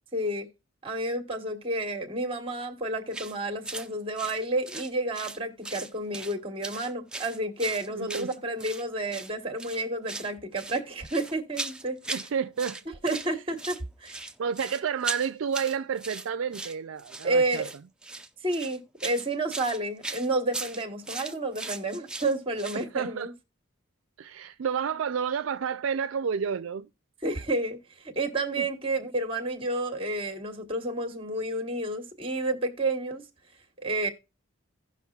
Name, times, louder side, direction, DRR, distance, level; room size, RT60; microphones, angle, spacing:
voice 1, 0.1-0.5 0.8-12.0 13.0-14.2 17.2-17.7 18.4-23.3 27.2-33.2 33.8-34.1, right 2 dB, 25° right, 1.2 m, -30 dB
sound 1, 3.1-3.3 3.6-3.9 4.2-5.4 5.6-6.3 6.6-8.8 9.1-9.3 9.6-10.3 10.6-12.3 12.6-13.3 13.6-22.8, right 2 dB, 5° right, 0.4 m, -38 dB
voice 2, 7.9-8.3 12.1-12.8 13.1-13.2 14.4-17.6 22.8-23.3 24.2-26.9 28.6-28.7, right 7 dB, 75° right, 0.4 m, -30 dB
16.5 x 5.8 x 2.3 m
head